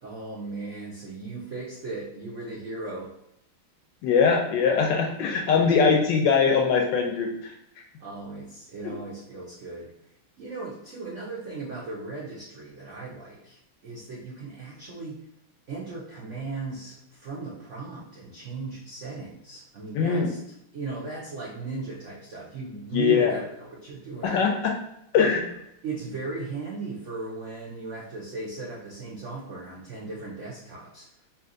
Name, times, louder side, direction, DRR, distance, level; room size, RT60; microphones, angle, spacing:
voice 1, 0.0-3.1 5.0-5.2 5.5-5.9 8.0-9.9 10.4-15.3 15.7-20.4 20.7-24.4 25.1-25.4 25.8-31.1, right 3 dB, 70° right, -5 dB, 0.7 m, -37 dB
voice 2, 4.0-7.5 19.9-20.3 22.9-23.3 24.2-24.8 25.1-25.4, left 5 dB, 75° left, 2 dB, 1.1 m, -22 dB
3.4 x 2.8 x 3.7 m, 0.79 s
omnidirectional pair, 2.3 m